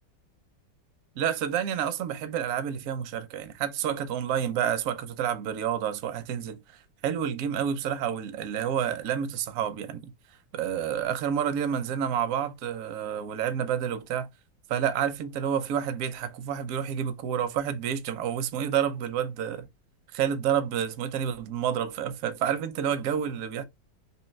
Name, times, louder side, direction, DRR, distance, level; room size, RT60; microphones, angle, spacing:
voice 1, 1.2-10.1 10.5-14.3 14.7-19.7 20.1-23.6, right 8 dB, 70° right, 0.8 m, -29 dB
3.1 x 2.8 x 3.1 m
omnidirectional pair, 1.9 m